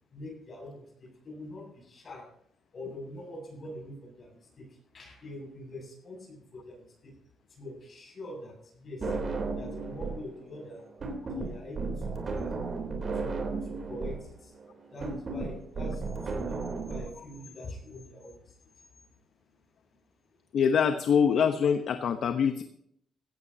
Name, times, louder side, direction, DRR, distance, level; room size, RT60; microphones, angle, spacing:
voice 1, 0.1-2.3 2.7-7.2 7.5-10.8 11.3-12.7 13.1-14.6 14.9-18.7, left 1 dB, 45° left, 1 dB, 6.9 m, -44 dB
sound 1, 9.0-10.3 10.5-17.0, right 3 dB, 45° right, 3.5 m, -34 dB
voice 2, 20.5-22.6, left 7 dB, 65° left, 8 dB, 1.0 m, -24 dB
16.5 x 15.0 x 2.9 m, 0.69 s
cardioid pair, 90°, 0 cm